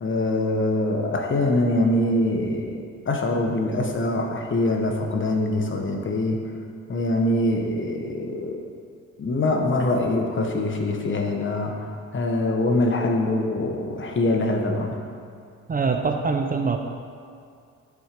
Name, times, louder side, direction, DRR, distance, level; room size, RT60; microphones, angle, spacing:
voice 1, 0.0-6.4 6.9-8.6 9.2-11.8 12.1-15.0, left 2 dB, 40° left, 2 dB, 1.3 m, -24 dB
voice 2, 15.7-16.8, right 4 dB, 30° right, 4 dB, 0.6 m, -23 dB
11.0 x 4.5 x 5.2 m, 2.4 s
cardioid pair, 90°, 30 cm